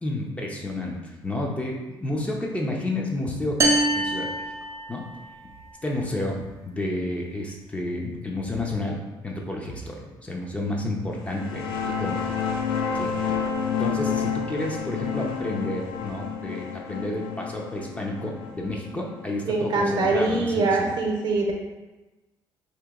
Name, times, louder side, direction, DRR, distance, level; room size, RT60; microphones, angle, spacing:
voice 1, 0.0-4.3 4.9-5.0 5.8-12.2 12.9-13.1 13.8-20.9, left 1 dB, 15° left, -1 dB, 0.5 m, -30 dB
sound 1, 3.6-5.3, right 2 dB, 35° right, 0.4 m, -24 dB
sound 2, 11.2-20.5, left 6 dB, 80° left, 0.4 m, -30 dB
voice 2, 19.5-21.5, right 3 dB, 60° right, 0 dB, 0.7 m, -23 dB
2.9 x 2.7 x 3.6 m, 1.1 s
cardioid pair, 105°, 9 cm